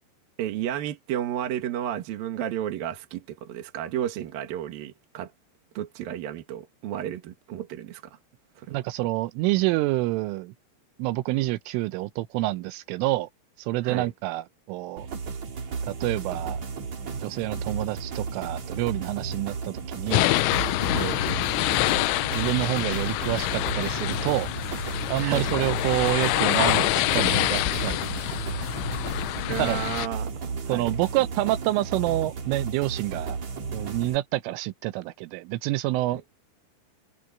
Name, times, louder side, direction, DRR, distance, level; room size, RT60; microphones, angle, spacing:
voice 1, 0.4-5.3 5.7-8.2 8.6-8.8 13.8-14.1 20.9-21.2 25.1-25.5 29.5-30.9, right 11 dB, 60° right, 2.9 m, -32 dB
voice 2, 8.7-10.5 11.0-13.3 13.6-15.1 15.8-16.6 17.1-20.3 22.3-24.5 25.1-28.1 29.6-29.8 30.7-33.4 33.7-36.2, right 17 dB, 90° right, 3.4 m, -27 dB
sound 1, 15.0-34.2, right 5 dB, 40° right, 3.6 m, -34 dB
sound 2, 20.1-30.1, left 18 dB, 85° left, 3.1 m, -26 dB
omnidirectional pair, 5.6 m